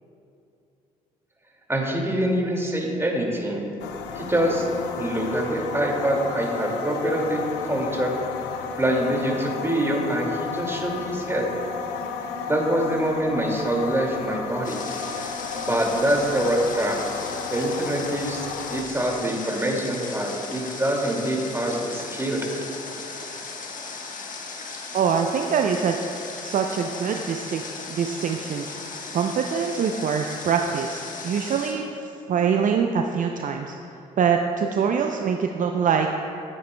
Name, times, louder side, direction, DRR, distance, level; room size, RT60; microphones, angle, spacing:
voice 1, 1.7-3.6 4.2-4.7 5.0-8.2 8.8-11.5 12.5-14.8 15.6-17.0 17.5-22.4, right 1 dB, 15° right, -1 dB, 2.2 m, -25 dB
sound 1, 3.8-18.8, left 6 dB, 80° left, 0.6 m, -33 dB
Water, 14.6-31.7, left 4 dB, 50° left, 1.2 m, -37 dB
voice 2, 24.9-26.0 26.4-28.7 29.1-33.7 34.2-36.1, right 6 dB, 50° right, 4 dB, 0.5 m, -24 dB
13.0 x 9.3 x 2.2 m, 2.7 s
hypercardioid pair, 50°, 18 cm